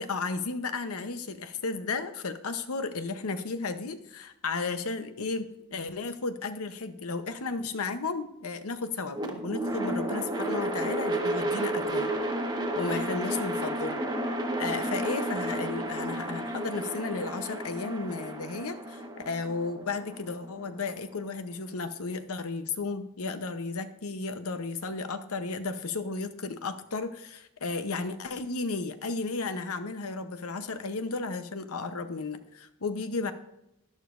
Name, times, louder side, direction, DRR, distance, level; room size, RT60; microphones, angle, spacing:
voice 1, 0.0-12.1 12.8-14.0 14.6-33.3, left 4 dB, 75° left, 9 dB, 0.8 m, -34 dB
sound 1, 9.1-21.3, right 1 dB, 20° right, 1.2 m, -32 dB
12.0 x 11.5 x 2.6 m, 0.87 s
head